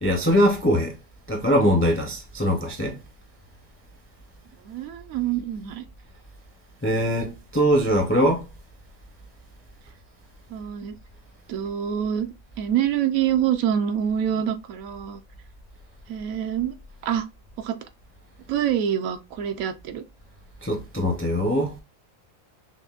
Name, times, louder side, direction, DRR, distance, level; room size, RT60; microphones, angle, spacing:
voice 1, 0.0-0.9 1.3-3.0 6.8-8.4 20.6-21.7, equal, 15° left, 0.4 m, -22 dB
voice 2, 4.6-5.9 10.5-11.0 11.5-12.3 12.6-15.2 16.1-16.8 17.0-17.3 17.6-17.8 18.5-20.0, right 9 dB, 75° right, 1.0 m, -26 dB
6.0 x 2.1 x 2.3 m
omnidirectional pair, 1.5 m